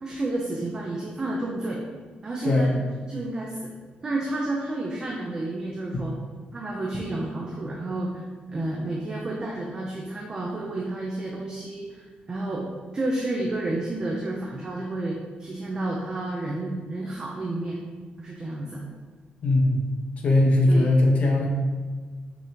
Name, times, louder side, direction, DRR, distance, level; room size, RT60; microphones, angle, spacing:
voice 1, 0.0-1.8 2.2-2.8 3.1-3.7 4.0-6.1 6.5-8.2 8.5-12.7 12.9-17.8 18.2-18.8 20.7-20.9, right 2 dB, 25° right, -2 dB, 0.6 m, -30 dB
voice 2, 19.4-19.8 20.2-21.5, left 2 dB, 45° left, 0 dB, 1.0 m, -19 dB
6.1 x 5.3 x 2.9 m, 1.4 s
wide cardioid pair, 165°, 3 cm